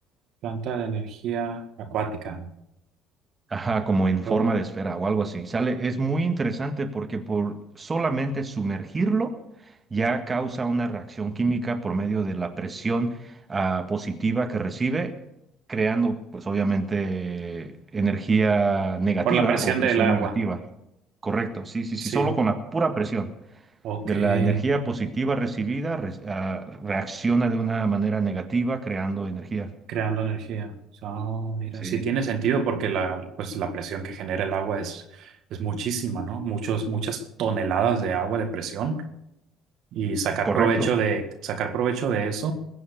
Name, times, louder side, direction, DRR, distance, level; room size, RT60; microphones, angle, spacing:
voice 1, 0.4-2.5 4.3-4.5 19.2-20.3 22.0-22.3 23.8-24.6 29.9-30.7 31.0-39.0 39.9-42.5, right 6 dB, 60° right, 6 dB, 1.8 m, -27 dB
voice 2, 3.5-9.3 9.9-15.1 15.7-20.6 21.2-23.3 24.0-29.7 31.7-32.0 40.4-40.9, right 3 dB, 30° right, 6 dB, 1.7 m, -26 dB
21.5 x 7.7 x 6.9 m, 0.83 s
hypercardioid pair, 60°, 0 cm